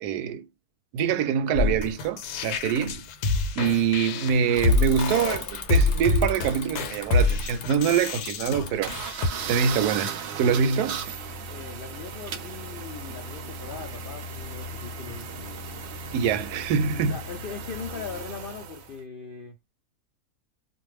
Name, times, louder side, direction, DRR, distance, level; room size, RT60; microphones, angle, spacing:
voice 1, 0.0-0.5 0.9-3.0 3.6-9.0 9.5-11.0 16.1-17.1, right 7 dB, 85° right, 1.1 m, -25 dB
sound 1, 1.5-9.3, left 3 dB, 85° left, 1.1 m, -26 dB
Bicycle / Mechanisms, 4.5-10.0, left 3 dB, 50° left, 0.8 m, -40 dB
sound 2, 8.8-19.0, right 4 dB, 60° right, 0.7 m, -36 dB
voice 2, 11.5-15.9 16.9-19.6, left 6 dB, 70° left, 0.5 m, -40 dB
2.5 x 2.2 x 3.1 m
omnidirectional pair, 1.6 m